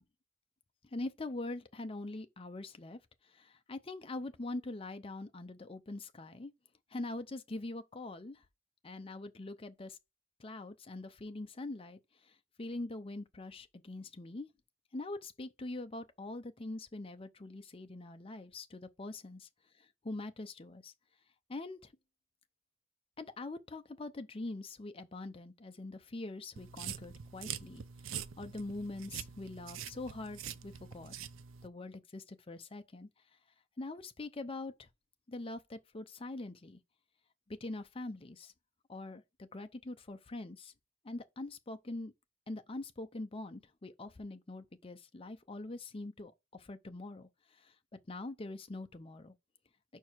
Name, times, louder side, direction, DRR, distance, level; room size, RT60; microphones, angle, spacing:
voice 1, 0.9-6.5 6.9-8.4 8.8-10.0 10.4-14.5 14.9-19.5 19.8-20.9 21.5-21.9 23.2-31.2 31.6-33.1 33.8-34.9 35.3-36.8 37.5-38.5 38.9-40.7 41.0-42.1 42.5-47.7 48.1-49.3, left 2 dB, 25° left, 0.6 m, -43 dB
sound 1, 26.6-31.7, right 8 dB, 70° right, 0.5 m, -45 dB
5.6 x 4.6 x 4.5 m
head